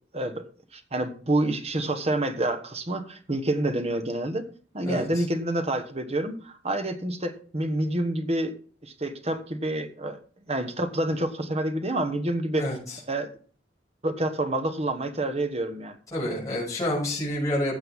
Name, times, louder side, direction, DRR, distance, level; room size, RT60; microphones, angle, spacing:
voice 1, 0.1-0.4 0.7-4.4 4.7-8.5 8.8-10.2 10.5-12.7 13.1-13.3 14.0-16.0, right 1 dB, 35° right, 7 dB, 1.2 m, -28 dB
voice 2, 4.8-5.2 12.6-13.0 16.1-17.8, left 1 dB, 20° left, -6 dB, 6.4 m, -28 dB
15.5 x 7.9 x 3.7 m, 0.43 s
head